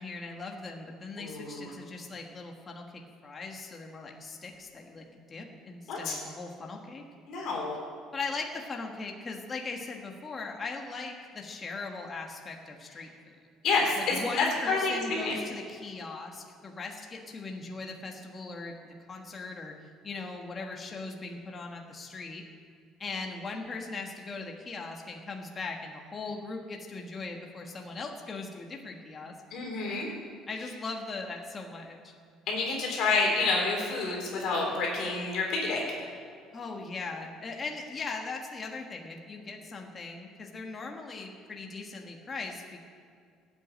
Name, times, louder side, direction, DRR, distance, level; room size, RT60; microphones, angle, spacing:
voice 1, 0.0-7.0 8.1-13.1 14.0-19.7 20.0-22.4 23.0-29.3 29.9-30.0 30.5-32.1 36.5-42.8, left 3 dB, 20° left, 1 dB, 1.4 m, -39 dB
voice 2, 1.2-1.7 5.9-6.2 7.3-7.7 13.6-14.0 14.4-15.4 29.5-30.1 32.5-36.1, left 3 dB, 50° left, -2 dB, 3.7 m, -29 dB
18.5 x 8.2 x 9.0 m, 2.2 s
cardioid pair, 175°, 0 cm